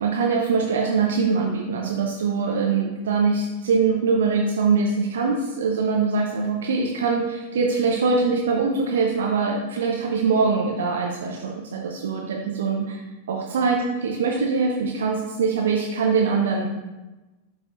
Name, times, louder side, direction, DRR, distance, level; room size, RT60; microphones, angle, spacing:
voice 1, 0.0-13.0 13.3-16.7, right 4 dB, 65° right, 0 dB, 0.7 m, -23 dB
11.5 x 4.4 x 2.5 m, 1.1 s
figure-of-eight pair, 90°, 0 cm